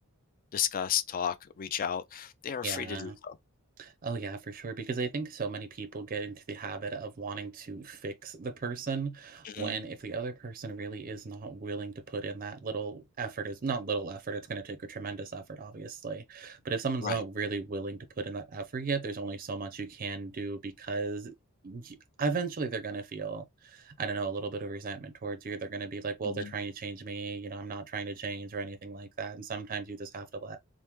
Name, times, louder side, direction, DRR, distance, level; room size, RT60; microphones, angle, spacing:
voice 1, 0.5-3.4 9.4-9.8 17.0-17.2 26.2-26.5, left 9 dB, 40° left, 0.3 m, -33 dB
voice 2, 2.6-3.2 3.8-21.3 21.6-30.6, right 4 dB, 40° right, 0.5 m, -36 dB
3.4 x 2.0 x 2.9 m
head